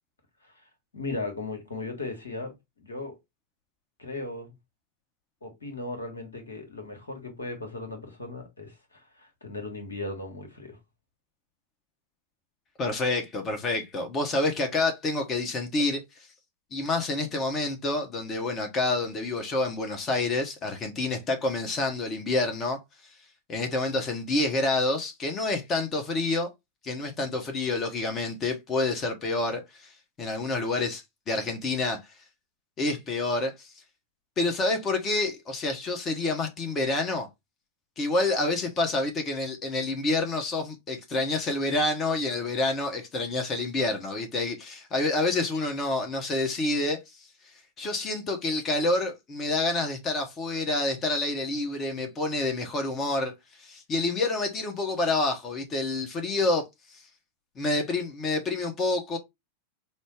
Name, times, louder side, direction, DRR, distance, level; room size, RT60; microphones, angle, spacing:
voice 1, 0.9-3.2 4.0-4.5 5.4-10.8, left 3 dB, 75° left, 1.3 m, -37 dB
voice 2, 12.8-16.3 16.7-23.1 23.5-26.5 26.8-32.0 32.8-33.7 34.4-37.3 38.0-53.3 53.6-56.6 56.9-57.1 57.6-59.2, left 2 dB, 25° left, 0.8 m, -28 dB
5.3 x 2.0 x 3.2 m
figure-of-eight pair, 90°, 0 cm